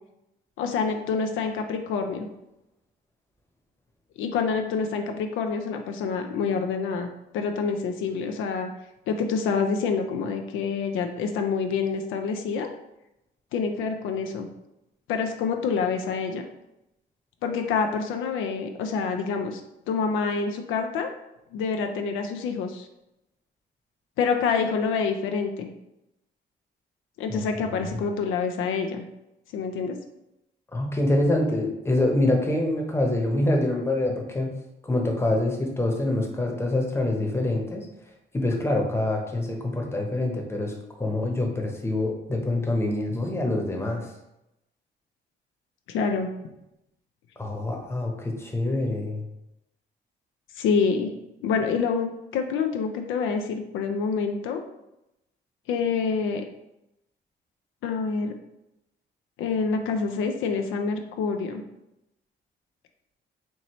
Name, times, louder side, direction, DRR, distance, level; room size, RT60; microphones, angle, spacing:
voice 1, 0.6-2.3 4.2-7.1 7.3-8.7 9.1-12.7 13.5-14.5 15.1-16.5 17.4-19.6 19.9-21.1 21.5-22.9 24.2-25.7 27.2-29.0 29.5-30.0 45.9-46.3 50.6-51.1 51.4-54.6 55.7-56.4 57.8-58.3 59.4-61.6, left 5 dB, 90° left, 5 dB, 0.5 m, -27 dB
voice 2, 30.7-34.5 34.8-37.9 38.3-44.1 47.4-49.2, left 1 dB, 10° left, 1 dB, 0.9 m, -25 dB
4.5 x 2.7 x 3.0 m, 0.89 s
cardioid pair, 90°, 20 cm